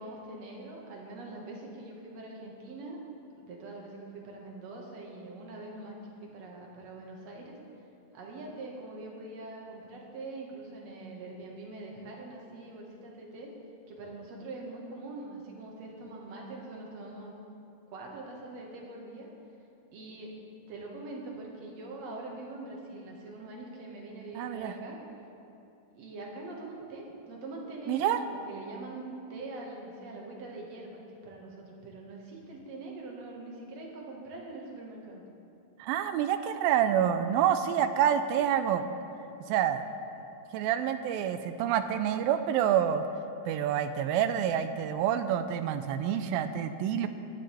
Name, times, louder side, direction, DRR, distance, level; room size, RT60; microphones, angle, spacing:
voice 1, 0.0-3.0 3.3-7.6 8.1-13.5 13.9-17.3 17.9-19.3 19.9-20.3 20.7-25.0 25.9-35.2, right 2 dB, 50° right, -1 dB, 2.4 m, -43 dB
voice 2, 24.3-24.7 27.9-28.2 35.8-38.8 39.5-39.8 40.5-43.0 43.5-47.1, right 9 dB, 80° right, 10 dB, 2.2 m, -27 dB
18.0 x 11.5 x 3.4 m, 2.7 s
omnidirectional pair, 4.3 m